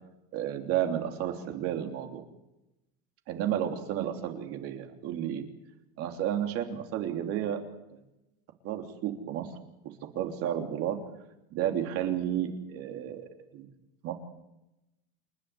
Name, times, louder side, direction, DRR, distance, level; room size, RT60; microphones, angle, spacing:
voice 1, 0.3-2.2 3.3-5.4 6.0-7.6 8.6-9.5 10.1-11.0 11.5-13.7 14.0-14.1, right 10 dB, 45° right, 4 dB, 3.2 m, -32 dB
28.5 x 12.0 x 9.8 m, 0.92 s
supercardioid pair, 155°, 31 cm